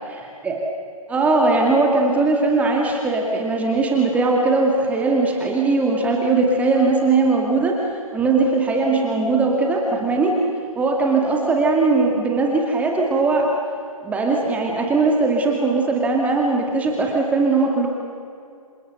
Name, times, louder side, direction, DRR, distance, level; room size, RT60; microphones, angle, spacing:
voice 1, 0.1-0.6 1.1-10.5 10.8-13.5 14.0-17.9, right 3 dB, 10° right, 0 dB, 2.2 m, -19 dB
28.0 x 25.5 x 6.9 m, 2.4 s
figure-of-eight pair, 135°, 18 cm